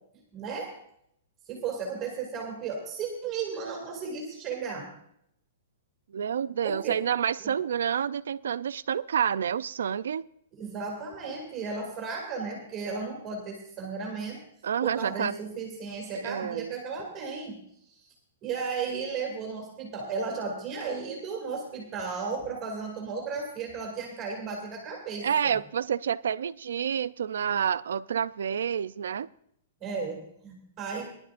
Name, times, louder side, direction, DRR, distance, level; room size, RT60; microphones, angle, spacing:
voice 1, 0.3-0.7 1.5-4.9 6.6-7.0 7.4-7.5 10.6-14.4 14.8-17.6 17.9-18.0 18.4-25.6 29.8-31.1, right 5 dB, 20° right, 2.6 m, -34 dB
voice 2, 6.1-10.2 14.6-15.3 16.1-16.8 25.2-29.3, right 8 dB, 85° right, 0.5 m, -29 dB
20.5 x 11.5 x 2.5 m
hypercardioid pair, 175°, 0 cm